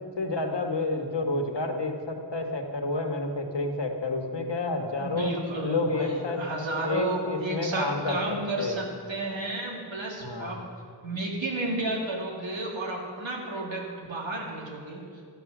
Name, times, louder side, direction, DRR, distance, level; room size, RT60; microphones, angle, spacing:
voice 1, 0.2-5.3 5.6-6.4 6.8-8.7 10.2-10.6, left 2 dB, 65° left, 3 dB, 1.5 m, -30 dB
voice 2, 5.0-10.6 11.0-15.0, right 2 dB, 85° right, -2 dB, 2.4 m, -32 dB
14.0 x 9.3 x 6.1 m, 2.1 s
wide cardioid pair, 60°, 45 cm